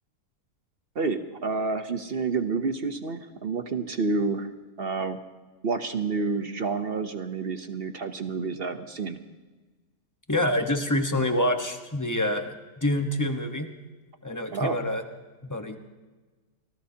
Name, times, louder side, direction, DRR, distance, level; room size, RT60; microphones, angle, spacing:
voice 1, 0.9-4.5 4.8-5.2 5.6-9.2 14.5-14.8, right 4 dB, 45° right, 9 dB, 0.9 m, -29 dB
voice 2, 10.3-13.7 14.2-15.0 15.5-15.8, left 1 dB, 15° left, 5 dB, 1.1 m, -26 dB
27.0 x 19.0 x 2.8 m, 1.3 s
omnidirectional pair, 1.7 m